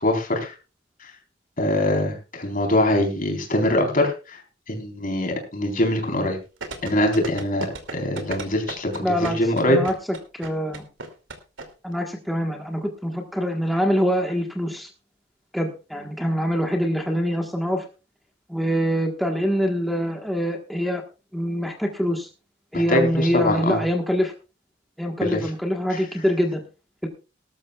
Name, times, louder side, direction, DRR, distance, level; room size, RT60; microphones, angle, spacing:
voice 1, 0.0-0.5 1.0-1.1 1.6-4.4 4.7-6.4 6.8-9.8 22.7-23.8 25.2-25.4, left 1 dB, 45° left, 3 dB, 4.2 m, -23 dB
sound 1, 6.6-11.7 11.9-12.0, right 3 dB, 80° right, 2.7 m, -34 dB
voice 2, 9.0-9.4 9.6-9.9 10.3-10.8 11.8-14.9 15.5-17.8 18.5-21.0 21.3-22.3 22.7-24.3 25.0-26.6 27.0-27.1, equal, ahead, 1 dB, 1.4 m, -24 dB
19.5 x 12.5 x 2.4 m, 0.32 s
head